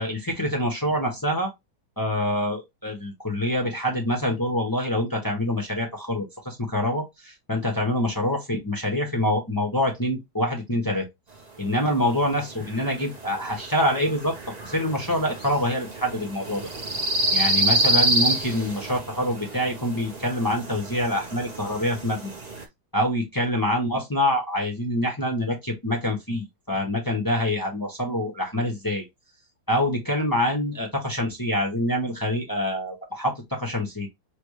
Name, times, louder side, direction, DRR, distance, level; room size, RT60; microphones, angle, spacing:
voice 1, 0.0-1.5 2.0-11.1 11.6-14.3 14.6-16.7 17.3-22.3 22.9-29.0 29.7-34.1, left 1 dB, 20° left, 0.6 m, -26 dB
sound 1, 11.8-22.6, right 1 dB, 40° right, 0.6 m, -28 dB
5.9 x 2.3 x 3.1 m
omnidirectional pair, 2.0 m